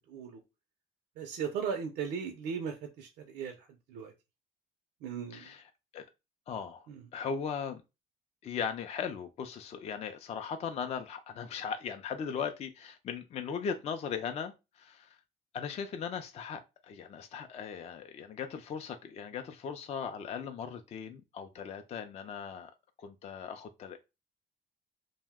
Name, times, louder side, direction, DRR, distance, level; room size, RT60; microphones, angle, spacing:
voice 1, 0.1-0.4 1.2-4.1 5.0-5.5 6.9-7.0, right 6 dB, 80° right, 0.5 m, -37 dB
voice 2, 5.3-6.1 6.5-6.9 7.1-7.8 8.4-15.2 15.5-22.7 23.0-24.0, left 7 dB, 40° left, 0.4 m, -38 dB
2.6 x 2.1 x 3.5 m
cardioid pair, 110°, 17 cm